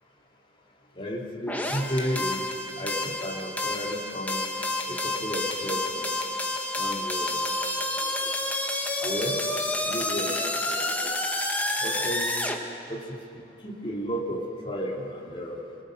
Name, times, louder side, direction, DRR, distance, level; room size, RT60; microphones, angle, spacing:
voice 1, 1.0-2.4 2.8-4.4 4.9-6.2 6.8-7.3 8.0-8.3 9.0-9.4 9.8-10.5 10.8-11.1 11.8-12.3 12.9-13.2 13.6-14.4 14.6-15.6, equal, 30° left, -3 dB, 3.4 m, -33 dB
sound 1, 1.5-12.6, left 1 dB, 10° left, 1.6 m, -29 dB
28.5 x 21.0 x 6.6 m, 2.6 s
head